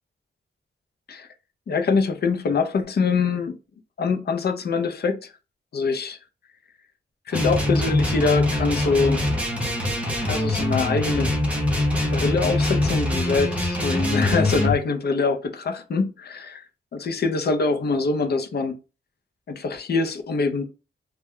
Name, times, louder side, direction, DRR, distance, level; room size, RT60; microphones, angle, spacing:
voice 1, 1.7-3.6 4.0-5.3 5.7-6.2 7.3-9.2 10.2-11.3 12.1-16.6 16.9-18.8 19.5-20.6, left 4 dB, 55° left, 0.5 m, -24 dB
sound 1, 7.3-14.8, left 1 dB, 5° right, 0.6 m, -23 dB
2.2 x 2.1 x 3.5 m
wide cardioid pair, 145°, 20 cm